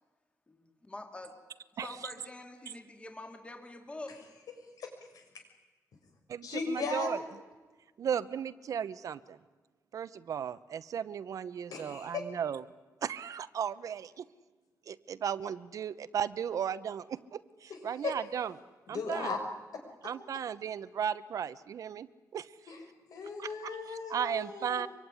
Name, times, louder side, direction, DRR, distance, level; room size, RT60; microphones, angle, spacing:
voice 1, 0.5-1.4 1.8-4.2, left 2 dB, 20° left, 5 dB, 2.6 m, -45 dB
voice 2, 4.5-5.2 6.4-7.2 11.7-12.3 17.7-18.2 18.9-19.4 19.7-19.8 22.7-22.8 23.1-24.9, left 4 dB, 75° left, 4 dB, 6.1 m, -37 dB
voice 3, 6.3-7.2 8.0-9.4 9.9-12.6 13.0-14.3 14.9-18.5 18.9-19.4 20.0-22.5 23.4-24.9, right 8 dB, 60° right, 15 dB, 0.9 m, -36 dB
25.0 x 23.0 x 9.9 m, 1.3 s
wide cardioid pair, 165°, 6 cm